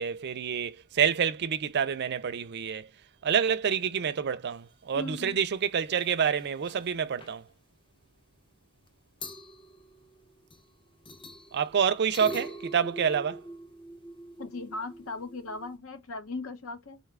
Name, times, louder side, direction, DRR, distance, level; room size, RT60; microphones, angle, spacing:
voice 1, 0.0-2.9 3.2-7.5 11.5-13.4, right 7 dB, 50° right, 0.4 m, -28 dB
voice 2, 4.9-5.4 14.4-17.0, left 3 dB, 65° left, 0.7 m, -38 dB
sound 1, 5.5-5.6 5.8-6.1 6.3-6.9 7.2-7.4 8.9-9.0 9.2-10.7 11.1-15.8, equal, 25° left, 0.6 m, -44 dB
4.0 x 2.4 x 3.2 m
head